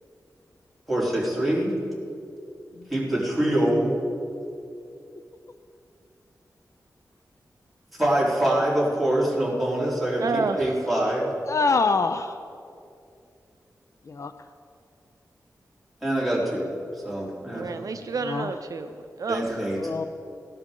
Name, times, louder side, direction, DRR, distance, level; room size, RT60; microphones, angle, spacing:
voice 1, 0.9-1.7 2.9-3.9 8.0-11.3 16.0-16.7 17.0-17.7 19.3-19.8, right 1 dB, ahead, -6 dB, 3.9 m, -24 dB
voice 2, 10.2-10.8 17.5-19.6, right 4 dB, 65° right, 8 dB, 0.6 m, -30 dB
voice 3, 11.5-12.4 14.1-14.3 17.7-17.9 18.2-18.5 19.8-20.1, left 4 dB, 50° left, 9 dB, 0.4 m, -25 dB
18.0 x 12.0 x 3.8 m, 2.6 s
wide cardioid pair, 95°, 6 cm